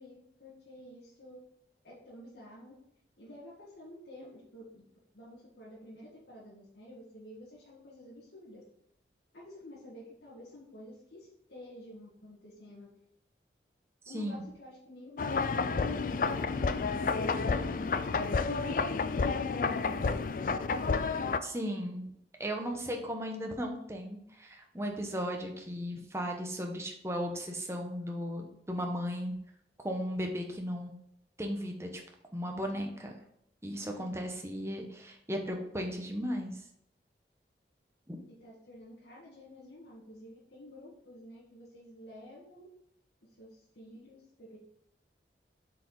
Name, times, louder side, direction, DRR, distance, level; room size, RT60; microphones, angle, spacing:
voice 1, 0.0-1.4 1.8-2.8 3.2-4.8 5.1-8.6 9.3-12.9 14.0-16.6 16.9-17.9 38.4-42.7 43.2-44.6, left 1 dB, 80° left, -7 dB, 1.9 m, -50 dB
sound 1, 15.2-21.4, left 4 dB, 50° left, 0.4 m, -30 dB
voice 2, 21.4-22.1 22.4-29.3 29.8-30.9 31.4-32.0 32.3-33.2 33.6-36.6 38.1-38.2, equal, 15° right, 2 dB, 1.0 m, -36 dB
7.6 x 5.0 x 4.0 m, 0.76 s
head